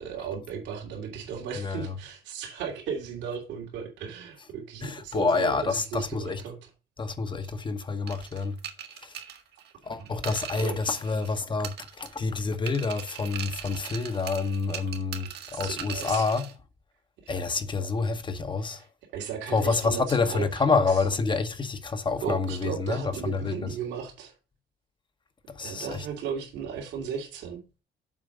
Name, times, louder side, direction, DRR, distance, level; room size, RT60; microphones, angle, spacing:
voice 1, 0.0-6.7 9.9-10.8 15.5-16.3 17.2-17.6 18.6-18.9 19.1-21.0 22.2-24.3 25.6-27.6, right 7 dB, 80° right, 2.8 m, -36 dB
voice 2, 4.8-6.4 7.0-8.6 9.0-9.1 9.8-16.5 17.3-18.8 19.5-23.7 25.6-26.0, left 4 dB, 25° left, 1.0 m, -28 dB
sound 1, 8.1-11.3 11.6-12.3 12.7-16.5, right 9 dB, 65° right, 1.5 m, -40 dB
7.4 x 4.5 x 6.6 m
cardioid pair, 115°, 18 cm